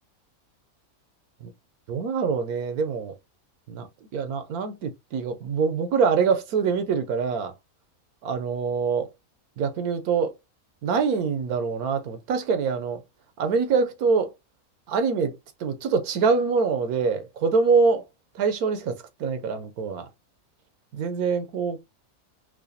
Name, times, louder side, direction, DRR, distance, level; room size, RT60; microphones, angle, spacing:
voice 1, 1.9-3.1 3.7-3.9 4.1-7.5 8.2-9.1 9.6-10.3 10.8-13.0 13.4-14.3 14.9-18.0 18.3-20.1 20.9-21.8, right 5 dB, 85° right, 1.2 m, -24 dB
4.8 x 2.3 x 2.8 m
omnidirectional pair, 1.5 m